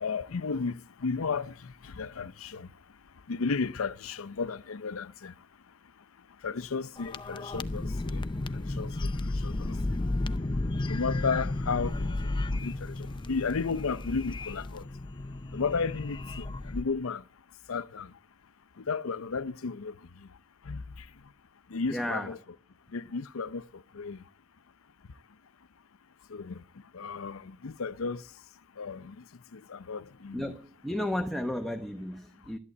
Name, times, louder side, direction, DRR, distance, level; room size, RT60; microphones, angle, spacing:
voice 1, 0.0-2.7 3.3-5.3 6.4-8.2 8.5-9.8 10.9-14.9 15.5-17.2 17.7-18.1 18.8-20.0 20.6-21.1 21.7-22.4 22.9-24.2 26.3-26.6 26.9-28.2 28.8-29.2 29.5-30.6, left 4 dB, 80° left, 0.6 m, -34 dB
sound 1, 7.0-16.8, left 2 dB, 25° left, 0.6 m, -33 dB
voice 2, 21.9-22.3 30.3-32.6, left 1 dB, ahead, 1.0 m, -33 dB
12.5 x 11.0 x 7.8 m
head